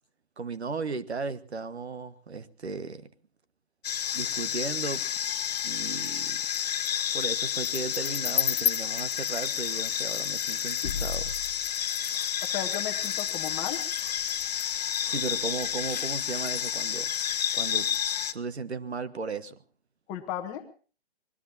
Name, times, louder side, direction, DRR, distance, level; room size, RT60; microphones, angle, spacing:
voice 1, 0.4-3.1 4.1-5.1 5.6-6.4 7.1-11.3 15.0-17.1 17.5-17.9 18.3-19.6, right 4 dB, 85° right, 13 dB, 1.5 m, -35 dB
sound 1, 3.8-18.3, left 9 dB, 40° left, 0.8 m, -30 dB
voice 2, 12.4-13.8 20.1-20.6, left 10 dB, 15° left, 6 dB, 0.9 m, -35 dB
25.5 x 20.0 x 2.7 m, 0.39 s
hypercardioid pair, 155°, 32 cm